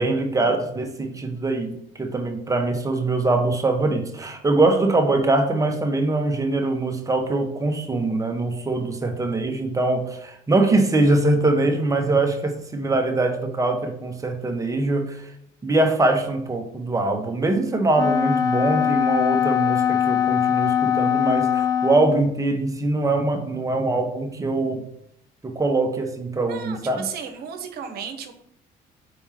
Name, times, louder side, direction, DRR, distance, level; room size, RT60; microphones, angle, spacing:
voice 1, 0.0-15.3 15.6-24.8 25.4-27.1, right 2 dB, 20° right, 4 dB, 1.1 m, -23 dB
Wind instrument woodwind instrument, 17.9-22.3, left 9 dB, 20° left, 0.4 m, -21 dB
voice 2, 26.5-28.3, right 7 dB, 70° right, 7 dB, 1.1 m, -34 dB
5.0 x 4.4 x 5.8 m, 0.73 s
cardioid pair, 110°, 17 cm